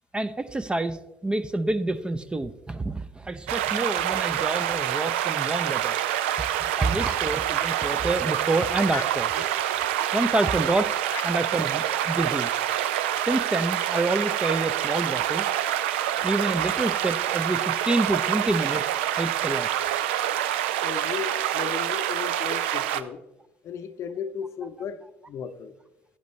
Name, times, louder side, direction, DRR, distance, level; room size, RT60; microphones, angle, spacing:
voice 1, 0.1-6.0 6.8-9.4 10.1-10.9 11.2-12.5 13.3-15.5 16.2-19.7, right 2 dB, 15° right, 12 dB, 0.6 m, -27 dB
sound 1, 3.5-23.0, right 11 dB, 75° right, 0.4 m, -26 dB
voice 2, 20.8-23.2 23.6-25.7, left 7 dB, 50° left, 11 dB, 0.7 m, -35 dB
10.5 x 10.0 x 3.1 m, 0.95 s
figure-of-eight pair, 55°, 6 cm